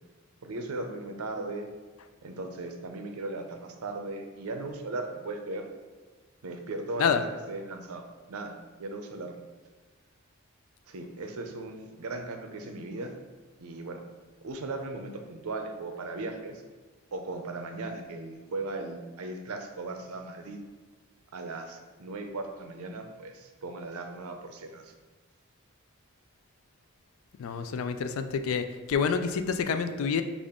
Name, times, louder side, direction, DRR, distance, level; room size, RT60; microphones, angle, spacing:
voice 1, 0.4-1.7 2.2-5.7 6.4-8.5 8.8-9.3 10.9-13.1 13.6-14.0 14.4-16.6 17.1-20.6 21.3-24.9 27.5-27.7, right 2 dB, 85° right, 5 dB, 0.6 m, -37 dB
voice 2, 27.4-30.2, left 6 dB, 70° left, 9 dB, 0.3 m, -28 dB
5.2 x 2.5 x 3.6 m, 1.4 s
head